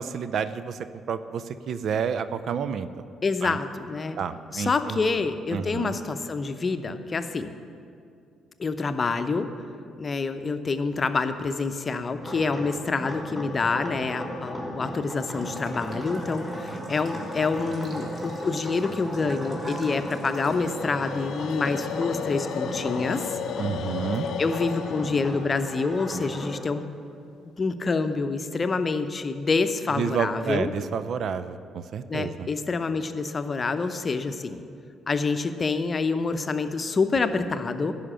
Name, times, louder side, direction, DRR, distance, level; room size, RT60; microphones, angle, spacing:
voice 1, 0.0-2.9 3.4-3.6 4.2-5.0 5.5-6.0 23.6-24.3 29.9-32.5, right 7 dB, 60° right, 13 dB, 0.5 m, -30 dB
voice 2, 3.2-4.2 4.5-7.5 8.6-9.5 10.0-23.4 24.4-26.9 27.6-30.7 32.1-34.6 35.1-37.9, left 4 dB, 40° left, 10 dB, 0.7 m, -27 dB
sound 1, 12.2-26.5, equal, 5° right, 3.2 m, -36 dB
Bathtub (filling or washing) / Trickle dribble, 15.4-26.3, right 1 dB, 35° right, 2.6 m, -44 dB
sound 2, 19.9-27.0, left 7 dB, 70° left, 0.5 m, -35 dB
11.0 x 5.8 x 8.8 m, 2.4 s
hypercardioid pair, 50°, 0 cm